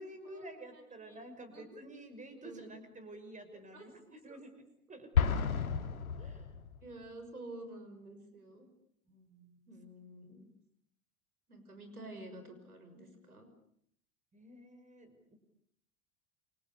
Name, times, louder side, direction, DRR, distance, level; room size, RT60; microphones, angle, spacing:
voice 1, 0.0-6.5 9.1-9.7 14.3-15.4, right 1 dB, 15° right, 8 dB, 5.8 m, -51 dB
voice 2, 0.7-1.2 1.5-1.8 2.4-2.8 3.7-3.8 4.3-4.4 6.8-8.7 9.7-10.5 11.5-13.5, right 1 dB, 80° right, 7 dB, 6.1 m, -50 dB
Explosion, 5.1-7.0, left 6 dB, 70° left, 2.2 m, -31 dB
29.0 x 24.0 x 7.0 m, 0.70 s
figure-of-eight pair, 85°, 44 cm